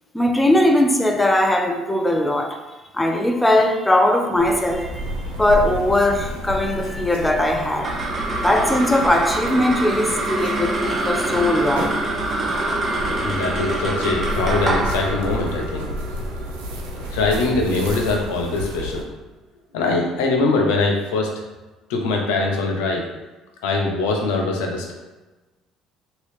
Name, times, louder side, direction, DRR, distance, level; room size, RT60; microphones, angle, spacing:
voice 1, 0.1-2.6 2.9-5.1 5.4-8.0 8.4-11.9 12.9-13.0, left 1 dB, 10° left, 3 dB, 0.6 m, -19 dB
sound 1, 4.4-19.0, equal, 85° right, 0.5 m, -31 dB
sound 2, 7.6-18.2, right 2 dB, 35° right, 0.6 m, -26 dB
voice 2, 13.2-15.9 17.1-19.1 19.7-21.3 21.9-23.1 23.6-24.9, left 3 dB, 80° left, 1 dB, 0.6 m, -22 dB
2.9 x 2.8 x 3.2 m, 1.1 s
hypercardioid pair, 65°, 0 cm